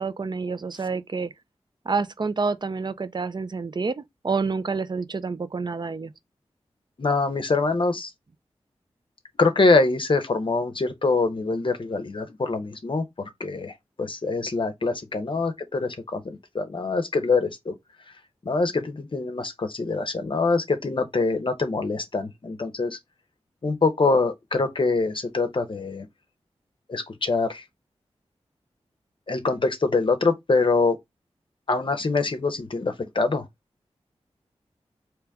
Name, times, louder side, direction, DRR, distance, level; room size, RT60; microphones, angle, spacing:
voice 1, 0.0-1.3 1.9-6.1, right 4 dB, 40° right, 0.5 m, -28 dB
voice 2, 7.0-8.1 9.4-13.0 13.4-17.7 18.4-23.0 23.6-26.1 26.9-27.6 29.3-31.0 31.7-33.5, left 3 dB, 50° left, 0.7 m, -24 dB
3.3 x 3.0 x 3.4 m
cardioid pair, 40°, 11 cm